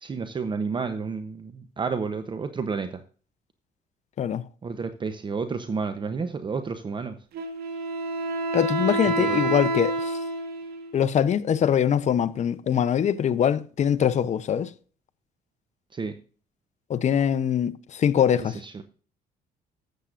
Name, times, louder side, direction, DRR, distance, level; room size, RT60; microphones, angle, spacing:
voice 1, 0.0-2.9 4.6-7.1 9.2-9.4 15.9-16.1 18.7-18.8, right 5 dB, 30° right, 0.8 m, -30 dB
Wind instrument woodwind instrument, 7.3-11.0, right 2 dB, 65° right, 1.9 m, -28 dB
voice 2, 8.5-10.2 10.9-14.7 16.9-18.6, left 8 dB, 45° left, 0.7 m, -23 dB
13.0 x 8.2 x 2.5 m
cardioid pair, 110°, 17 cm